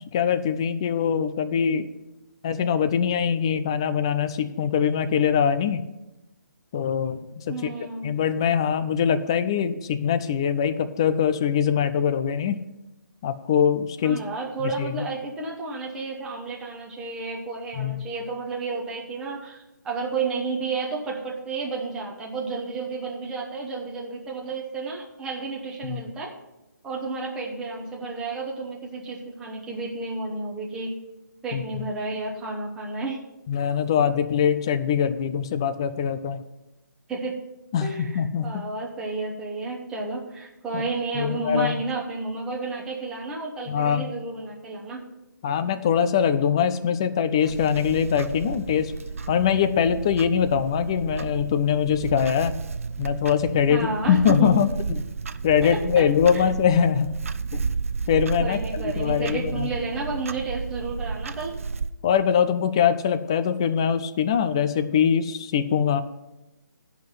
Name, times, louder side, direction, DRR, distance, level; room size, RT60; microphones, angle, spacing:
voice 1, 0.0-1.9 2.4-5.8 6.7-7.7 8.0-12.6 13.2-14.2 14.6-15.0 17.8-18.0 25.8-26.0 31.5-31.8 33.5-36.4 37.7-38.6 40.7-40.8 41.1-41.8 43.7-44.1 45.4-48.9 49.3-52.6 53.0-54.7 55.4-57.1 57.5-57.7 58.1-59.7 62.0-66.0, left 8 dB, 15° left, 12 dB, 0.3 m, -23 dB
voice 2, 7.5-8.1 14.0-26.3 26.8-31.0 31.4-33.2 37.1-37.4 37.8-45.0 53.7-54.6 55.6-56.1 56.3-56.4 58.4-61.6, right 3 dB, 5° right, -2 dB, 0.9 m, -31 dB
Clock, 47.4-61.9, right 4 dB, 45° right, 0.5 m, -32 dB
10.0 x 5.7 x 7.8 m, 0.94 s
figure-of-eight pair, 145°, 10 cm